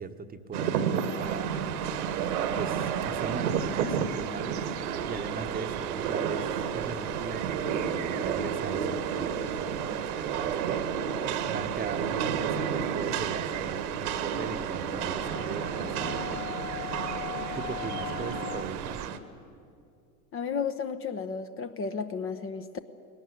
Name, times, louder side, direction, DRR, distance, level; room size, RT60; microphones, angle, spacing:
voice 1, 0.0-1.5 2.2-4.7 5.1-11.2 11.5-16.4 17.5-19.0, right 5 dB, 20° right, 8 dB, 1.1 m, -39 dB
Rain, 0.5-19.2, right 7 dB, 75° right, 1.7 m, -31 dB
sound 1, 1.2-19.1, right 11 dB, 40° right, 1.1 m, -42 dB
sound 2, 4.7-5.5 15.1-18.6, left 12 dB, 75° left, 4.0 m, -40 dB
voice 2, 20.3-22.9, left 5 dB, 30° left, 10 dB, 1.0 m, -33 dB
20.0 x 18.5 x 9.4 m, 2.5 s
hypercardioid pair, 90°, 45 cm